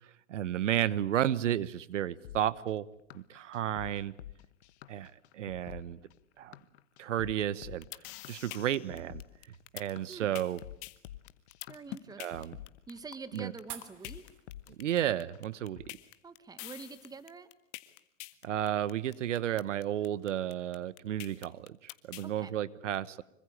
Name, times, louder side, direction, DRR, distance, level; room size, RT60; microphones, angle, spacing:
voice 1, 0.3-2.9 3.1-4.1 4.9-6.0 6.4-6.5 7.0-7.8 8.3-9.2 9.7-10.6 12.2-12.6 13.3-13.5 14.8-15.8 18.4-23.2, right 11 dB, 75° right, 19 dB, 1.2 m, -32 dB
sound 1, 2.2-15.9, left 13 dB, 60° left, 1.4 m, -50 dB
sound 2, 7.6-22.3, left 19 dB, 40° left, 1.8 m, -45 dB
sound 3, 8.8-17.2, right 11 dB, 35° right, 3.0 m, -56 dB
voice 2, 10.1-10.4 11.7-14.2 16.2-17.5 22.2-22.5, right 4 dB, 10° right, 13 dB, 1.6 m, -47 dB
26.0 x 25.0 x 8.6 m, 0.76 s
hypercardioid pair, 125°, 37 cm